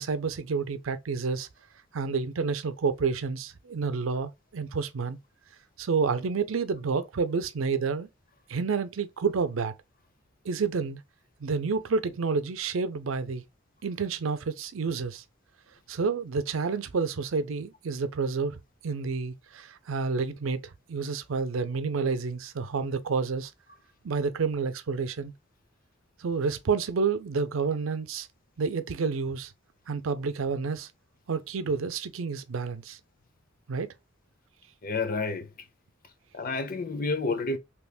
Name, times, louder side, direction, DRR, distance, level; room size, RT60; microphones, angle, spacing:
voice 1, 0.0-1.5 1.9-5.2 5.8-8.1 8.5-9.7 10.4-11.0 11.4-13.4 13.8-15.2 15.9-23.5 24.0-25.3 26.2-28.3 28.6-29.5 29.9-30.9 31.3-33.0 33.7-33.9, right 5 dB, 85° right, 0.5 m, -29 dB
voice 2, 34.8-35.5 36.3-37.6, left 3 dB, 45° left, 0.6 m, -29 dB
3.4 x 3.0 x 2.3 m
head